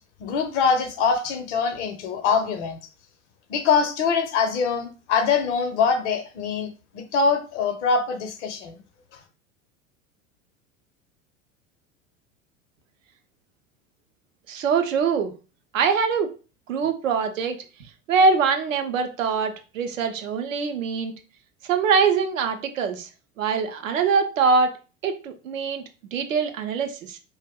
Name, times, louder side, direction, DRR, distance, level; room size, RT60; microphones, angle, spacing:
voice 1, 0.2-2.8 3.5-6.7 6.9-8.7, left 5 dB, 60° left, 7 dB, 0.7 m, -23 dB
voice 2, 14.5-15.3 15.7-16.3 16.7-17.6 18.1-21.1 21.6-23.1 23.4-24.8 25.0-25.8 26.1-27.2, right 5 dB, 75° right, 6 dB, 0.6 m, -23 dB
2.2 x 2.0 x 3.4 m, 0.34 s
figure-of-eight pair, 80°, 40 cm